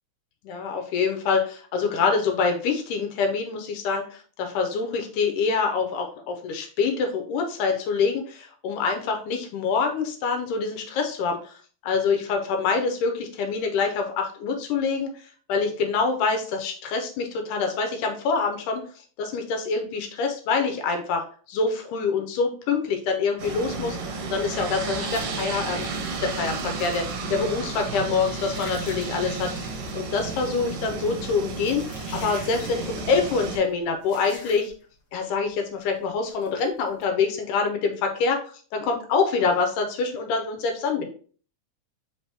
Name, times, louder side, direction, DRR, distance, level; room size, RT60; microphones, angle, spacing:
voice 1, 0.4-15.1 15.5-25.9 26.2-29.5 29.9-34.7 35.1-38.4 38.7-41.1, left 5 dB, 80° left, 4 dB, 2.1 m, -26 dB
sound 1, 23.4-33.6, right 4 dB, 85° right, 2.5 m, -32 dB
sound 2, 24.5-35.0 35.3-35.5 35.8-36.0 36.4-37.1, left 3 dB, 60° left, 1.4 m, -47 dB
5.3 x 2.9 x 3.2 m, 0.43 s
omnidirectional pair, 3.7 m